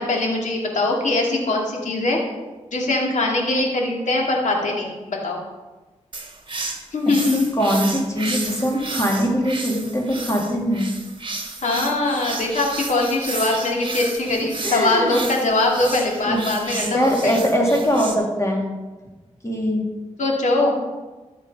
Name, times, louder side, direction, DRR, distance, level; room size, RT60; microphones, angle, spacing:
voice 1, 0.0-2.2 2.7-5.4 6.9-7.5 11.6-17.4 20.2-20.7, left 2 dB, 75° left, -1 dB, 2.6 m, -22 dB
sound 1, 6.1-18.1, right 3 dB, 40° right, 1.6 m, -32 dB
voice 2, 7.6-10.9 14.6-15.2 16.3-16.4 16.8-18.6 19.4-19.8, equal, 25° left, -1 dB, 3.5 m, -21 dB
13.5 x 6.7 x 5.5 m, 1.2 s
cardioid pair, 60°, 13 cm